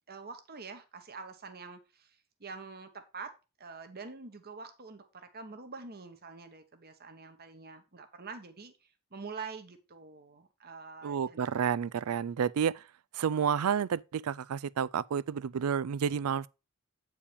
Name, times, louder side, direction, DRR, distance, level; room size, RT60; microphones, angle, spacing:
voice 1, 0.1-3.3 3.6-11.5, right 4 dB, 45° right, 1.3 m, -46 dB
voice 2, 11.0-12.8 13.1-16.5, right 7 dB, 90° right, 0.4 m, -30 dB
8.6 x 4.9 x 5.1 m
head